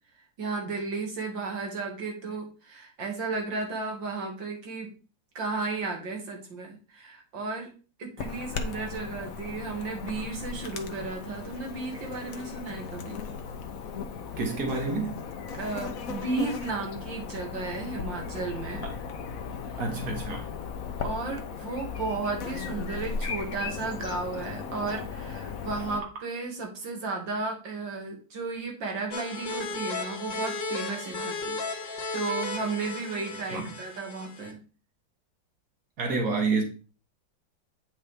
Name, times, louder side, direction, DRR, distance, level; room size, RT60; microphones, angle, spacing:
voice 1, 0.4-4.9 5.3-7.7 8.0-13.2 15.5-18.8 19.7-19.8 21.0-34.6, right 3 dB, 85° right, 2.7 m, -34 dB
Chirp tweet / Buzz, 8.2-26.0, left 6 dB, 60° left, 1.1 m, -37 dB
voice 2, 14.4-15.1 18.8-19.0 19.8-20.5 33.5-33.7 36.0-36.6, right 4 dB, 60° right, 2.2 m, -28 dB
sound 1, 29.1-34.5, left 3 dB, 75° left, 1.9 m, -35 dB
9.0 x 5.8 x 3.4 m
omnidirectional pair, 2.0 m